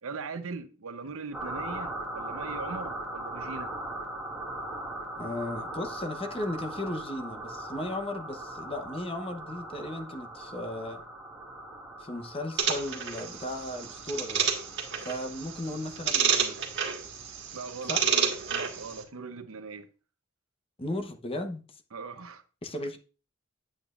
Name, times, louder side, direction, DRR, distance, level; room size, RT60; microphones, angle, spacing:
voice 1, 0.0-3.7 17.5-19.9 21.9-22.4, right 4 dB, 75° right, 0.8 m, -40 dB
sound 1, 1.3-17.6, right 1 dB, 5° right, 2.1 m, -40 dB
voice 2, 5.2-11.0 12.0-14.5 15.0-16.6 17.8-18.1 20.8-21.8 22.6-23.0, left 1 dB, 25° left, 0.9 m, -36 dB
sound 2, 12.6-19.0, right 6 dB, 55° right, 1.7 m, -30 dB
8.7 x 8.7 x 2.5 m
head